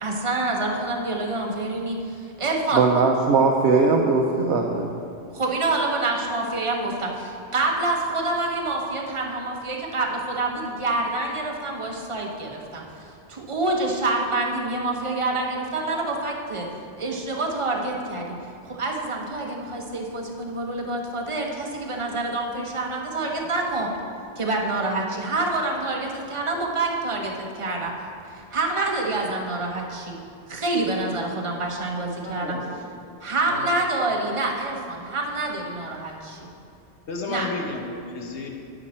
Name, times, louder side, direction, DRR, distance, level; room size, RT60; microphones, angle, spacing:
voice 1, 0.0-2.8 5.3-12.8 13.3-16.7 17.0-18.4 18.6-23.9 24.4-27.9 28.3-30.2 30.5-32.6 33.2-36.5 37.3-37.5, right 2 dB, 30° right, 0 dB, 1.0 m, -27 dB
voice 2, 2.7-4.9, right 4 dB, 80° right, 1 dB, 1.0 m, -19 dB
voice 3, 32.2-32.7 33.5-33.8 37.1-38.5, left 3 dB, 75° left, 2 dB, 1.3 m, -32 dB
9.7 x 8.0 x 4.3 m, 2.5 s
omnidirectional pair, 1.1 m